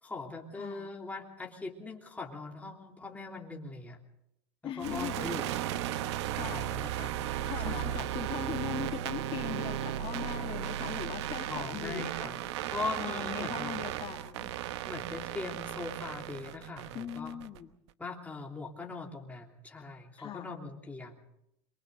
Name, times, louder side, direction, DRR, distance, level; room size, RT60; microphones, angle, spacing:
voice 1, 0.0-4.0 4.6-5.5 6.4-7.2 7.6-8.0 11.5-12.4 12.7-13.7 14.8-17.4 18.0-21.1, left 3 dB, 10° left, 1 dB, 3.2 m, -41 dB
voice 2, 0.5-0.9 4.6-5.4 6.3-6.7 7.4-12.1 13.0-14.5 16.9-17.7 20.2-20.5, left 10 dB, 40° left, 4 dB, 1.7 m, -40 dB
sound 1, 4.8-17.6, right 12 dB, 80° right, 1.1 m, -35 dB
28.0 x 23.5 x 3.9 m, 0.80 s
supercardioid pair, 125°, 14 cm